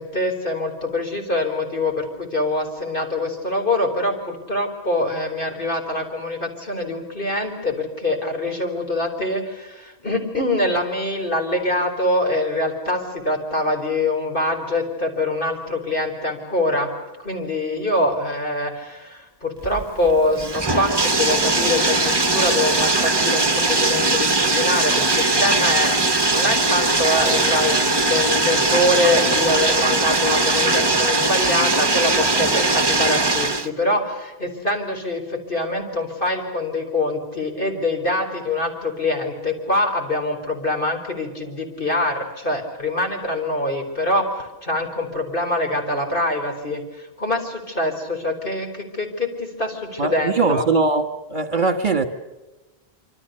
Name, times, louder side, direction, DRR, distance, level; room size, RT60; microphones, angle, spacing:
voice 1, 0.0-16.9 17.2-50.7, left 1 dB, 55° left, 4.6 m, -24 dB
Bathtub (filling or washing), 19.6-33.7, right 2 dB, 25° right, 1.3 m, -20 dB
voice 2, 50.0-51.0 51.3-52.1, right 4 dB, 50° right, 1.7 m, -20 dB
26.5 x 25.0 x 6.7 m
omnidirectional pair, 1.1 m